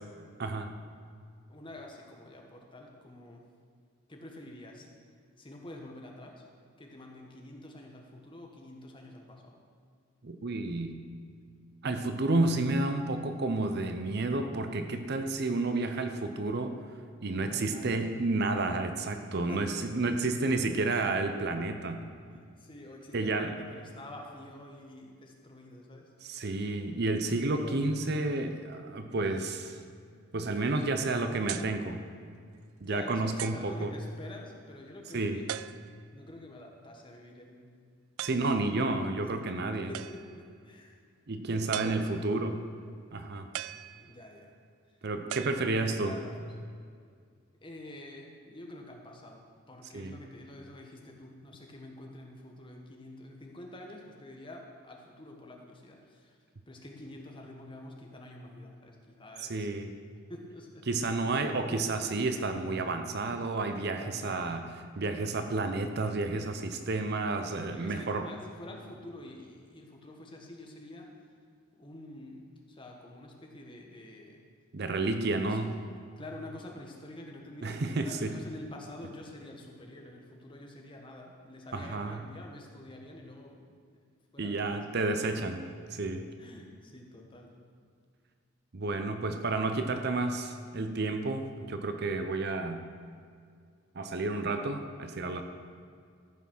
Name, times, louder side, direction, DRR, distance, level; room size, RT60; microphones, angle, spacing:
voice 1, 0.4-0.7 10.2-11.0 11.8-16.7 17.2-22.0 23.1-23.5 26.2-29.8 30.3-32.0 32.8-33.9 35.1-35.4 38.2-39.9 41.3-42.6 43.1-43.5 45.0-46.2 49.9-50.2 59.4-59.9 60.9-64.6 65.0-68.2 74.7-75.8 77.6-78.3 81.7-82.2 84.4-85.7 85.9-86.3 88.7-92.8 93.9-95.4, right 2 dB, 50° right, 7 dB, 0.7 m, -31 dB
voice 2, 1.5-3.4 4.1-4.9 5.4-6.5 6.8-9.6 17.3-18.2 19.5-19.9 20.2-20.3 22.3-26.1 27.6-27.8 30.5-30.6 30.9-31.6 32.8-35.5 36.1-37.8 38.2-38.5 39.5-41.0 41.8-42.4 44.0-44.5 44.9-45.0 45.3-46.5 47.6-56.4 56.7-59.8 60.3-61.2 64.0-64.5 67.5-71.1 71.8-74.4 75.2-75.7 76.2-83.7 84.3-85.0 86.4-87.6, left 1 dB, 25° left, 1 dB, 1.3 m, -48 dB
sound 1, 31.5-31.8 32.5-32.6 33.4-33.8 35.5-36.1 38.2-38.6 39.9-40.5 41.7-42.4 43.5-44.4 45.3-46.1, right 13 dB, 80° right, 0.3 m, -40 dB
14.0 x 5.9 x 6.1 m, 2.1 s
head